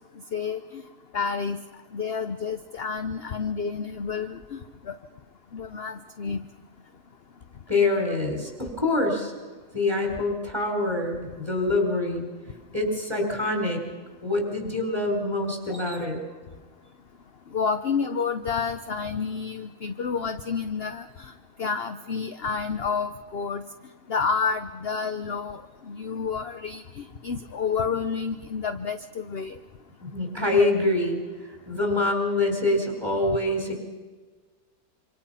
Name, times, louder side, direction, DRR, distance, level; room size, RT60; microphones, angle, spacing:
voice 1, 0.3-0.8 1.1-1.6 1.9-4.6 4.9-5.0 5.5-6.4 15.7-16.0 17.5-21.3 21.6-23.6 24.1-25.6 25.9-29.6 33.3-33.4, left 5 dB, 45° left, 9 dB, 0.9 m, -29 dB
voice 2, 7.7-9.3 9.7-12.2 12.7-13.8 14.2-16.2 30.0-31.2 31.7-33.8, left 2 dB, 15° right, 2 dB, 4.4 m, -25 dB
26.5 x 25.5 x 5.7 m, 1.4 s
omnidirectional pair, 1.8 m